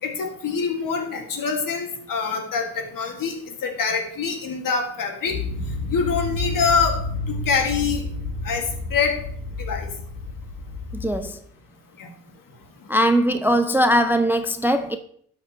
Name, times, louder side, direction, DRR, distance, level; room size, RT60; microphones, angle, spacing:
voice 1, 0.0-5.4 5.9-7.0 7.3-8.0 8.4-9.2 9.6-9.9 12.0-12.1, left 5 dB, 55° left, 4 dB, 2.1 m, -25 dB
sound 1, 5.3-11.2, left 2 dB, 75° left, 2.4 m, -30 dB
voice 2, 10.9-11.4 12.9-15.0, equal, 5° right, 9 dB, 0.5 m, -20 dB
12.0 x 7.4 x 3.1 m, 0.62 s
hypercardioid pair, 55°, 40 cm